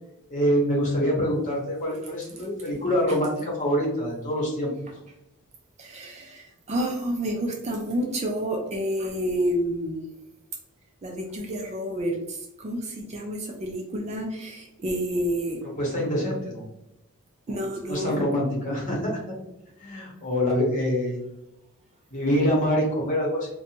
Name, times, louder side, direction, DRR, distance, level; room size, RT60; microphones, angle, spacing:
voice 1, 0.3-4.7 15.8-16.6 17.5-17.6 17.9-19.1 19.8-21.2 22.1-23.5, equal, 35° left, -3 dB, 0.9 m, -25 dB
voice 2, 5.8-10.0 11.0-15.6 17.5-18.2, equal, 30° right, 1 dB, 0.4 m, -29 dB
2.6 x 2.2 x 2.9 m, 0.86 s
head